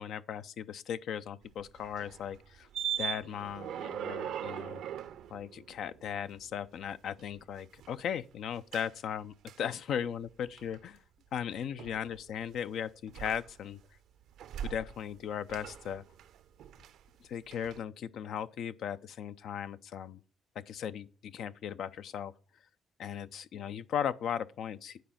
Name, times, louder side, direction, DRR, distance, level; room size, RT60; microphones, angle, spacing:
voice 1, 0.0-2.7 3.0-4.8 5.3-11.0 11.3-13.8 14.6-16.0 17.2-20.2 20.6-22.3 23.0-25.0, left 8 dB, 75° left, 0.5 m, -37 dB
sound 1, 1.4-6.5 6.9-8.0 8.7-8.9 9.5-9.6 10.3-10.8 11.8-12.6 13.1-13.9 14.2-15.2 15.5-17.2 17.5-17.8, right 10 dB, 80° right, 0.6 m, -41 dB
9.3 x 4.3 x 7.4 m
cardioid pair, 90°, 0 cm